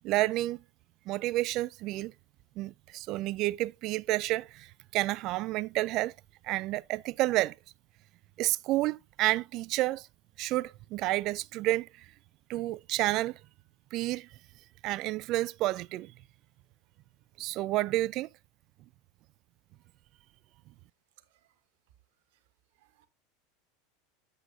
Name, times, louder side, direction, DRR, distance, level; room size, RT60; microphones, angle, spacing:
voice 1, 0.0-0.6 1.1-2.1 2.6-6.1 6.4-7.6 8.4-10.1 10.4-11.9 12.5-13.4 13.9-14.3 14.8-16.1 17.4-18.3, right 17 dB, 50° right, 0.4 m, -30 dB
voice 2, 21.2-21.5 22.3-22.4 22.8-23.1, right 14 dB, 70° right, 1.1 m, -65 dB
8.0 x 7.9 x 2.7 m
hypercardioid pair, 100°, 0 cm